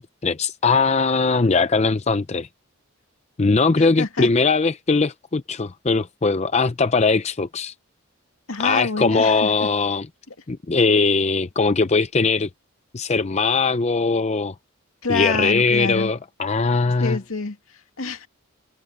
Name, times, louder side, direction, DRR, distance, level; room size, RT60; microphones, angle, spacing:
voice 1, 0.0-2.5 3.4-7.7 8.6-10.1 10.5-12.5 12.9-14.5 15.1-17.2, left 4 dB, 30° left, 0.6 m, -20 dB
voice 2, 3.8-4.3 8.5-9.7 15.0-16.1 17.0-18.3, left 3 dB, 80° left, 2.2 m, -27 dB
head